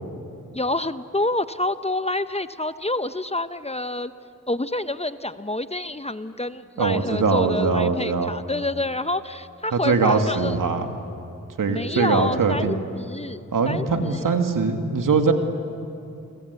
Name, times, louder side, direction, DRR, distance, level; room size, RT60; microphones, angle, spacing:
voice 1, 0.5-4.1 4.5-10.6 11.7-14.3, left 2 dB, 20° left, 12 dB, 1.0 m, -28 dB
voice 2, 6.8-8.3 9.7-10.9 11.6-12.8 13.5-15.3, right 4 dB, 70° right, 5 dB, 2.5 m, -22 dB
29.0 x 22.0 x 8.4 m, 2.7 s
supercardioid pair, 40°, 33 cm